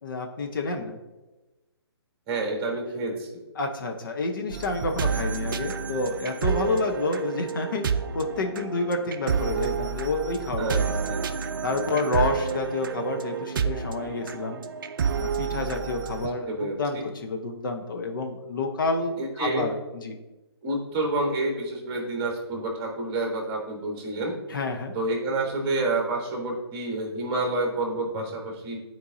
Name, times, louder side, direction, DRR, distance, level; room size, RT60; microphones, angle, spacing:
voice 1, 0.0-1.0 3.6-10.9 11.6-14.6 15.2-20.1 24.5-25.0, left 3 dB, 50° left, 4 dB, 1.0 m, -29 dB
voice 2, 2.3-3.4 10.6-11.2 16.2-17.1 19.2-19.7 20.6-24.4 24.9-28.8, right 2 dB, 25° right, 1 dB, 1.4 m, -29 dB
Content warning, 4.5-16.3, right 6 dB, 55° right, 0.5 m, -29 dB
12.0 x 4.6 x 2.7 m, 1.1 s
figure-of-eight pair, 135°, 14 cm